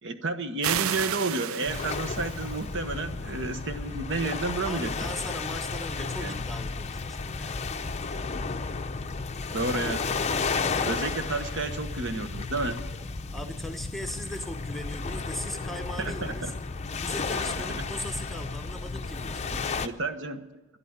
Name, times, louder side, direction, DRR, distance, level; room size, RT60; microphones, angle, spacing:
voice 1, 0.0-4.9 6.2-6.4 9.5-10.1 10.8-12.8 16.0-16.5 19.8-20.4, right 3 dB, 55° right, 9 dB, 1.1 m, -31 dB
sound 1, 0.6-2.7, right 9 dB, 75° right, 0.5 m, -32 dB
sound 2, 1.7-19.9, left 4 dB, 30° left, 0.6 m, -33 dB
voice 2, 4.7-7.6 10.6-10.9 13.3-16.5 17.0-19.5, equal, ahead, 5 dB, 0.8 m, -39 dB
12.5 x 11.0 x 8.8 m, 1.1 s
head